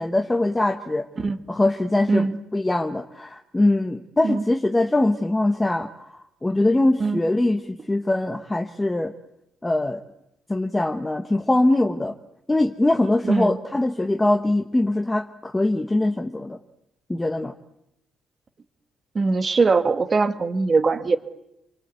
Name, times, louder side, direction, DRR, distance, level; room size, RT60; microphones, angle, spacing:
voice 1, 0.0-1.1 1.5-2.3 2.5-9.1 9.6-10.0 10.5-12.2 12.5-16.6 17.1-17.5, left 2 dB, 10° left, 5 dB, 1.2 m, -22 dB
voice 2, 13.2-13.6 19.1-21.2, right 4 dB, 25° right, 9 dB, 1.7 m, -21 dB
28.0 x 25.0 x 8.3 m, 0.84 s
cardioid pair, 155°, 0 cm